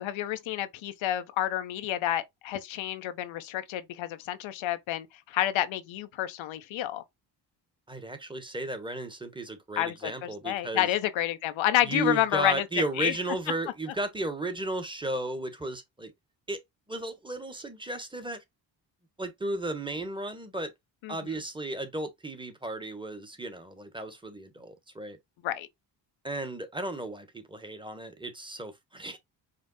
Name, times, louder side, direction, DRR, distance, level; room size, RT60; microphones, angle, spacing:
voice 1, 0.0-7.0 9.8-12.6 13.0-13.1 21.0-21.2 25.4-25.7, left 13 dB, 85° left, 0.8 m, -29 dB
voice 2, 7.9-10.9 11.8-16.1 16.5-16.6 16.9-18.4 19.2-20.7 21.1-25.2 26.2-29.2, right 2 dB, 10° right, 1.2 m, -34 dB
5.1 x 2.0 x 4.0 m
cardioid pair, 75°, 46 cm